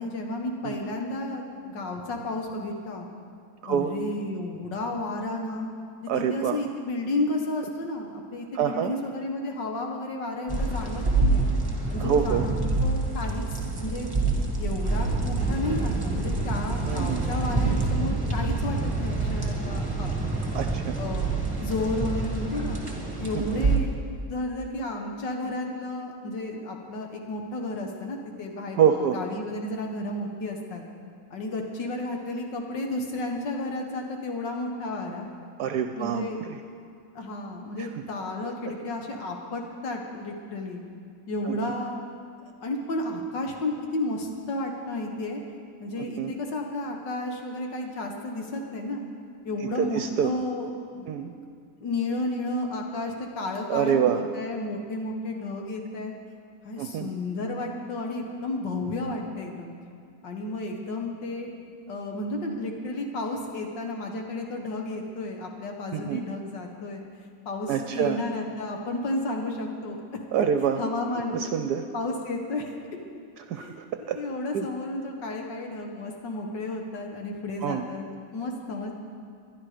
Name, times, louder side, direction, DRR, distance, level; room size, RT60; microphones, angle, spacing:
voice 1, 0.0-3.1 3.7-5.7 6.1-11.5 11.9-14.1 14.6-20.1 20.9-22.8 23.2-24.0 24.2-30.8 31.3-35.3 36.0-36.4 37.1-40.8 41.3-42.0 42.4-45.4 45.8-49.0 49.4-51.4 51.8-56.1 56.6-59.7 60.2-61.5 61.9-67.0 67.5-70.2 70.8-71.4 71.9-72.7 73.6-78.9, left 2 dB, 80° left, 2 dB, 2.1 m, -32 dB
voice 2, 6.1-6.6 8.5-8.9 12.0-12.4 16.9-17.2 20.5-21.0 23.3-23.8 28.7-29.2 35.6-36.6 37.8-37.9 41.5-41.7 46.0-46.3 49.6-50.3 51.1-51.3 53.7-54.2 56.8-57.1 65.9-66.2 67.7-68.2 70.3-70.8 71.3-71.8 73.5-74.2 74.5-74.7 77.6-77.8, right 8 dB, 75° right, 7 dB, 1.1 m, -26 dB
sound 1, 10.5-23.8, right 3 dB, 15° right, 1.8 m, -27 dB
21.0 x 11.5 x 5.1 m, 2.4 s
omnidirectional pair, 1.9 m